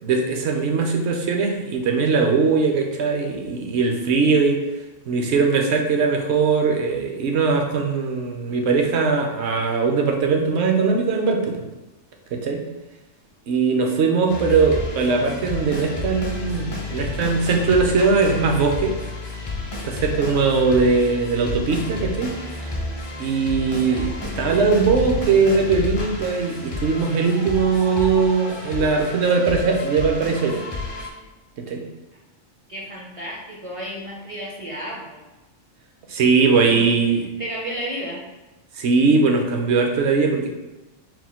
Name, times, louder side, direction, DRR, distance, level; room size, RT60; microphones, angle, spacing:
voice 1, 0.0-4.6 5.1-11.6 12.3-12.6 13.5-19.0 19.8-22.3 23.2-30.6 31.7-31.8 36.1-37.3 38.8-40.5, right 4 dB, 65° right, 2 dB, 0.9 m, -20 dB
sound 1, 14.3-31.1, left 3 dB, 30° left, 0.5 m, -31 dB
voice 2, 23.7-24.2 32.7-35.2 36.5-36.9 37.4-38.2, equal, 40° right, -3 dB, 0.5 m, -33 dB
4.2 x 2.2 x 4.2 m, 1.1 s
omnidirectional pair, 1.3 m